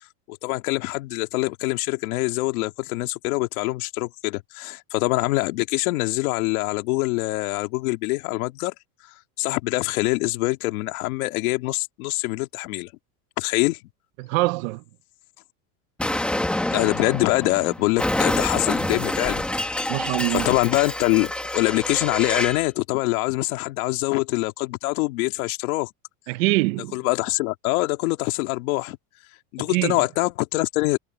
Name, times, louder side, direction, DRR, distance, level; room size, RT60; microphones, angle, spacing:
voice 1, 0.3-8.7 9.4-12.9 13.4-13.8 16.7-19.4 20.3-25.9 26.9-29.0 29.5-31.0, left 22 dB, 65° left, 2.3 m, -24 dB
voice 2, 14.2-14.8 19.9-20.5 26.3-27.0 29.7-30.0, right 23 dB, 60° right, 0.7 m, -24 dB
Explosion, 16.0-22.7, left 1 dB, ahead, 1.1 m, -27 dB
supercardioid pair, 170°, 46 cm